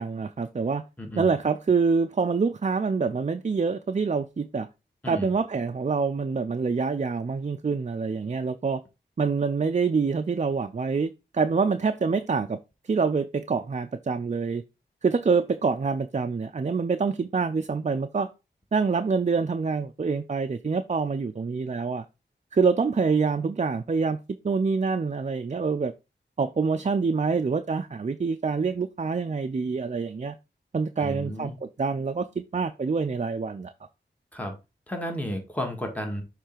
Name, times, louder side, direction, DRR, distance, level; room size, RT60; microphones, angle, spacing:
voice 1, 0.0-0.8 1.2-4.7 5.1-8.8 9.2-12.6 12.8-14.6 15.0-18.3 18.7-22.0 22.5-24.2 24.4-25.9 26.4-30.3 30.7-33.7, right 5 dB, 40° right, 0.5 m, -26 dB
voice 2, 1.0-1.3 5.0-5.3 31.0-31.6 34.3-34.5 34.9-36.2, equal, 10° left, 1.7 m, -32 dB
6.6 x 3.3 x 4.5 m
cardioid pair, 50°, 19 cm